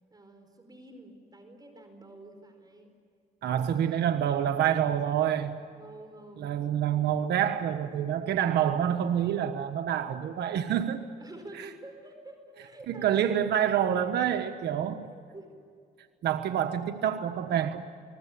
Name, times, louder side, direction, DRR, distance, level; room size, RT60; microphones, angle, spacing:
voice 1, 0.1-2.9 3.5-5.0 5.7-7.1 11.2-13.4 15.0-15.6, right 2 dB, 20° right, 5 dB, 4.6 m, -49 dB
voice 2, 3.4-5.6 6.4-11.0 11.6-11.7 12.9-15.1 16.2-17.9, right 9 dB, 75° right, 7 dB, 1.4 m, -27 dB
30.0 x 21.0 x 8.5 m, 2.3 s
cardioid pair, 90°, 17 cm